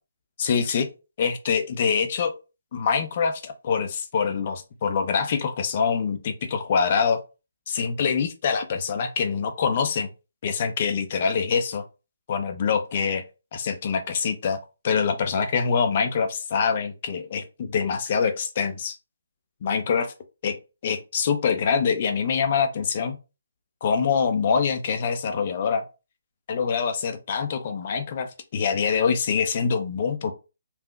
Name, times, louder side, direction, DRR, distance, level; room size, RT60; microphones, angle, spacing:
voice 1, 0.4-0.9 1.2-2.3 2.7-7.2 7.7-10.1 10.4-11.8 12.3-13.2 13.5-14.6 14.8-19.0 19.6-20.1 20.4-20.6 20.8-23.2 23.8-25.8 26.5-28.3 28.5-30.3, left 6 dB, 40° left, 7 dB, 0.6 m, -24 dB
3.5 x 2.5 x 2.3 m, 0.29 s
figure-of-eight pair, 145°, 0 cm